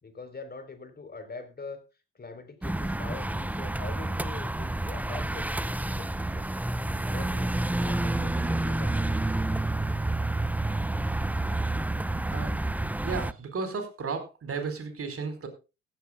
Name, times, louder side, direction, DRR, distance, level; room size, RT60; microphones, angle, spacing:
voice 1, 0.0-1.8 2.1-5.5 5.8-6.5 7.1-9.2, left 3 dB, 30° left, 9 dB, 3.8 m, -43 dB
sound 1, 2.6-13.3, right 2 dB, 5° right, 0.6 m, -29 dB
voice 2, 13.0-15.5, right 4 dB, 40° right, 9 dB, 4.4 m, -34 dB
16.0 x 15.0 x 2.3 m, 0.29 s
hypercardioid pair, 55°, 33 cm